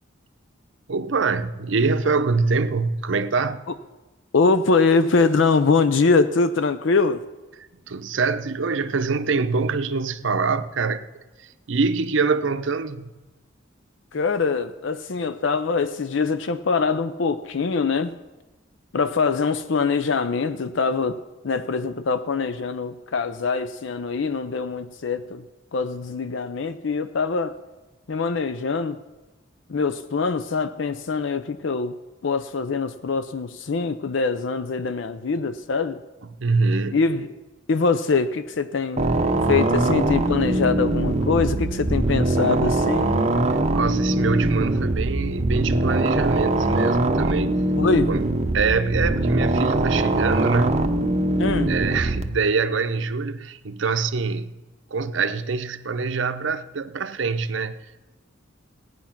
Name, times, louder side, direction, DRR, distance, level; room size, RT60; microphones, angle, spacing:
voice 1, 0.9-3.6 7.9-11.0 11.4-13.1 36.2-37.0 43.7-47.6 48.1-48.3 48.5-50.8 51.7-54.6 54.9-57.9, right 4 dB, 70° right, 0.7 m, -24 dB
voice 2, 4.3-7.2 14.1-18.2 18.9-21.2 21.4-25.4 25.7-27.5 28.1-29.0 29.7-31.9 32.2-36.0 36.9-37.3 37.7-39.0 39.5-43.1 47.8-48.1 51.4-51.7, left 4 dB, 70° left, 0.5 m, -23 dB
sound 1, 39.0-52.2, right 2 dB, 35° right, 0.9 m, -22 dB
16.5 x 9.6 x 5.9 m
head